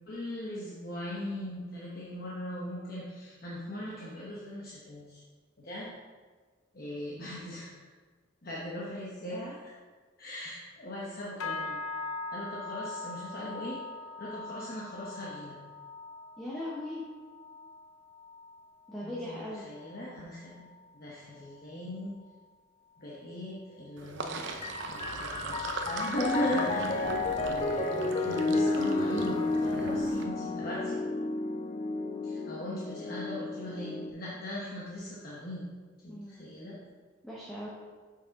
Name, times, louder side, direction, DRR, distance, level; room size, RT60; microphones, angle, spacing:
voice 1, 0.1-5.2 5.6-5.9 6.7-7.9 8.4-9.7 10.2-11.8 12.3-13.8 14.2-15.6 19.0-20.6 20.9-22.1 23.0-31.0 32.2-35.7 36.0-36.8, left 1 dB, 45° left, -6 dB, 1.0 m, -39 dB
sound 1, 11.4-20.9 21.2-21.7 22.1-22.4 23.0-23.1, left 3 dB, 90° left, 0.6 m, -42 dB
voice 2, 16.4-17.0 18.9-19.7 36.1-36.5 37.2-37.7, left 1 dB, ahead, -7 dB, 0.9 m, -39 dB
Sink (filling or washing), 24.0-30.2, right 3 dB, 60° right, 0.6 m, -38 dB
Piano, 24.5-34.1, left 3 dB, 30° left, 0.3 m, -32 dB
6.4 x 5.8 x 4.0 m, 1.5 s
head